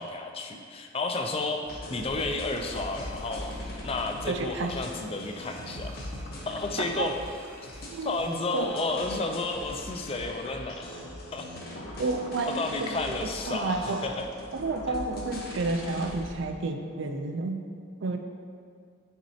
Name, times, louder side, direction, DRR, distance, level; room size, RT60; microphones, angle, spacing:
voice 1, 0.0-3.5 3.8-5.9 6.5-7.1 8.0-11.0 11.3-11.5 12.5-14.3, left 3 dB, 30° left, 4 dB, 0.4 m, -32 dB
sound 1, 1.7-16.3, left 1 dB, 45° left, 0.9 m, -41 dB
Alarm, 2.0-9.7, equal, 10° right, 0.7 m, -50 dB
voice 2, 4.3-4.8 6.8-7.1 7.9-8.2 8.5-8.7 12.0-14.0 14.5-17.6 18.0-18.2, right 3 dB, 60° right, 5 dB, 0.4 m, -31 dB
9.2 x 4.1 x 2.8 m, 2.1 s
head